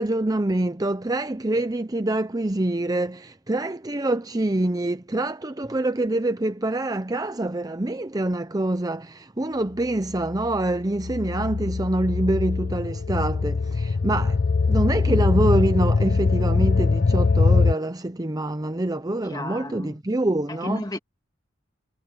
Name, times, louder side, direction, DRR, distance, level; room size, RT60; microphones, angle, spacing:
voice 1, 0.0-14.4 14.7-20.8, right 1 dB, 20° right, 0.7 m, -25 dB
sound 1, 10.1-17.7, left 4 dB, 50° left, 0.5 m, -22 dB
voice 2, 19.2-20.0 20.5-21.0, left 1 dB, 20° left, 2.3 m, -33 dB
head